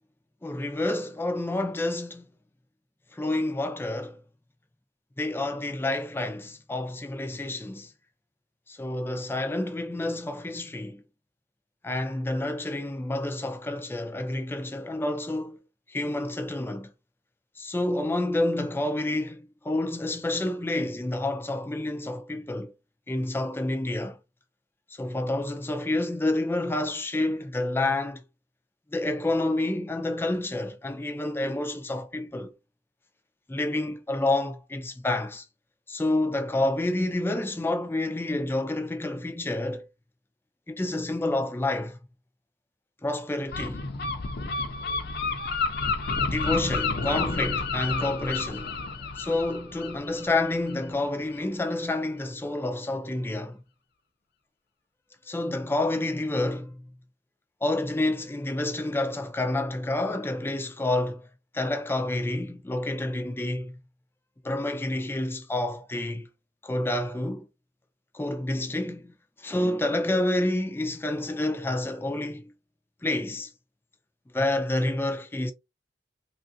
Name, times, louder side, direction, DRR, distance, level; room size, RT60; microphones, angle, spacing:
voice 1, 0.4-2.3 3.1-4.2 5.2-7.9 8.7-11.0 11.8-15.6 15.9-16.9 17.6-22.7 23.1-24.2 24.9-28.2 28.9-32.5 33.5-35.4 35.9-39.8 40.7-42.0 43.0-43.9 46.2-48.8 49.2-53.6 55.3-56.8 57.6-61.2 61.5-63.8 64.4-66.3 66.6-67.5 68.1-72.5 73.0-73.5 74.3-75.5, left 2 dB, 10° left, 0.4 m, -29 dB
Gull seagull, 43.5-51.0, left 4 dB, 60° left, 0.6 m, -30 dB
3.1 x 2.5 x 2.6 m
head